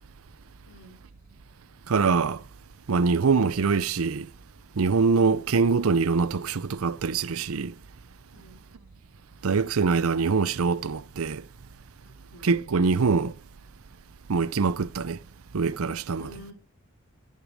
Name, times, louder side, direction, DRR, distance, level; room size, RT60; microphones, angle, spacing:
voice 1, 0.7-1.0 8.3-8.6 12.0-12.5 16.2-16.5, left 1 dB, 85° left, 5.0 m, -49 dB
voice 2, 1.9-2.4 2.9-4.3 4.8-7.7 9.4-11.4 12.4-13.3 14.3-15.2 15.5-16.3, right 4 dB, 85° right, 0.6 m, -24 dB
13.5 x 8.3 x 5.0 m
head